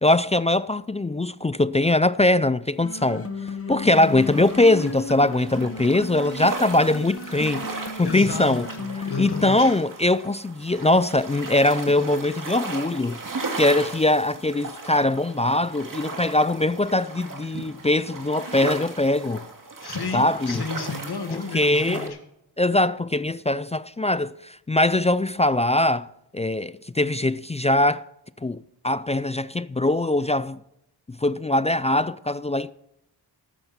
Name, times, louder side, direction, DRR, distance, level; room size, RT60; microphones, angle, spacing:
voice 1, 0.0-3.3 3.7-8.7 9.2-13.2 13.6-19.4 20.1-20.6 21.5-22.1 22.6-26.1 26.3-28.0 28.4-28.6 28.8-30.6 31.2-32.7, left 2 dB, 15° left, 0.3 m, -22 dB
sound 1, 2.8-9.4, left 3 dB, 35° left, 1.2 m, -34 dB
sound 2, 3.9-22.1, right 3 dB, 50° right, 2.4 m, -37 dB
voice 2, 8.0-9.7 19.8-22.2, left 4 dB, 65° left, 2.0 m, -32 dB
13.5 x 13.0 x 4.3 m
wide cardioid pair, 85°, 41 cm